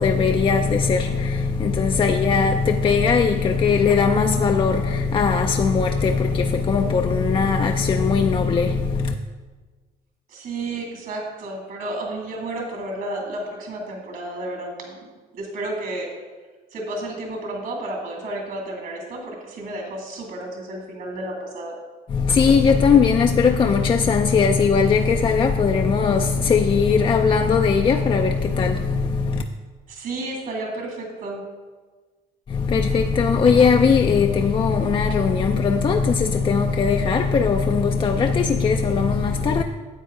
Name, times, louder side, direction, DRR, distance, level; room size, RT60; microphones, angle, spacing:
voice 1, 0.0-9.1 22.1-29.4 32.5-39.6, left 5 dB, 30° left, 0.4 m, -19 dB
voice 2, 10.3-15.0 15.3-16.1 16.7-21.7 29.9-31.4, right 2 dB, 60° right, 2.3 m, -32 dB
9.6 x 7.8 x 3.7 m
cardioid pair, 110°, 17 cm